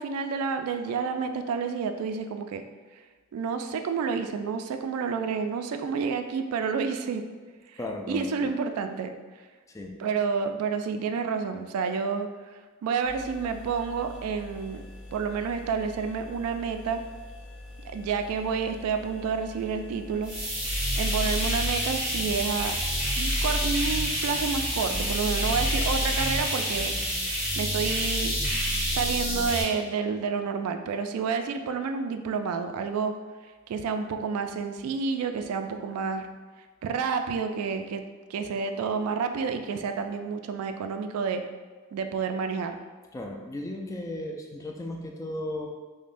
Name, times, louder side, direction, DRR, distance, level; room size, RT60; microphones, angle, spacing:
voice 1, 0.0-2.6 3.3-7.2 8.1-9.1 10.0-12.3 12.8-14.8 15.1-17.0 17.8-20.3 21.0-22.8 23.2-27.0 27.6-28.3 28.9-33.1 33.7-36.3 36.8-38.0 38.3-41.4 41.9-42.8, right 5 dB, 85° right, 10 dB, 0.3 m, -29 dB
voice 2, 7.8-8.5 9.7-10.0 43.1-45.7, left 1 dB, 15° left, 1 dB, 0.3 m, -35 dB
sound 1, 13.0-28.3, left 1 dB, 70° left, 1.0 m, -45 dB
sound 2, 20.2-29.6, equal, 5° right, 1.3 m, -28 dB
5.1 x 2.1 x 2.5 m, 1.4 s
head